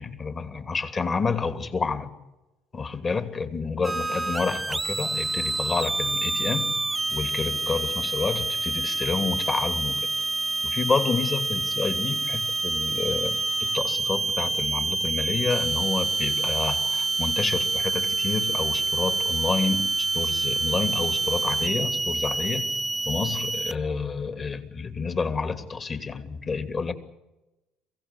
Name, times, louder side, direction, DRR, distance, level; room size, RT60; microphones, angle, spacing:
voice 1, 0.0-2.1 2.7-6.7 7.1-10.1 10.6-22.7 23.1-26.9, left 4 dB, 35° left, 2.8 m, -29 dB
sound 1, 3.8-23.7, right 3 dB, 15° right, 0.7 m, -27 dB
23.5 x 16.5 x 9.8 m
supercardioid pair, 75°, 0 cm